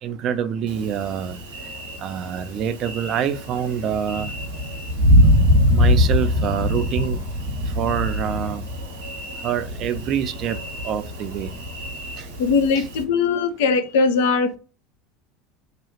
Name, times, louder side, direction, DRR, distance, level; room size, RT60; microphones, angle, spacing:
voice 1, 0.0-1.4 2.0-4.3 5.7-7.2 7.8-8.7 9.4-10.6 10.8-11.5 12.2-12.3 12.8-12.9, right 9 dB, 45° right, 0.4 m, -26 dB
Thunder, 0.7-13.0, left 1 dB, 80° right, 0.9 m, -23 dB
voice 2, 12.4-14.6, left 4 dB, 65° left, 0.5 m, -20 dB
2.9 x 2.3 x 3.0 m
figure-of-eight pair, 70°, 0 cm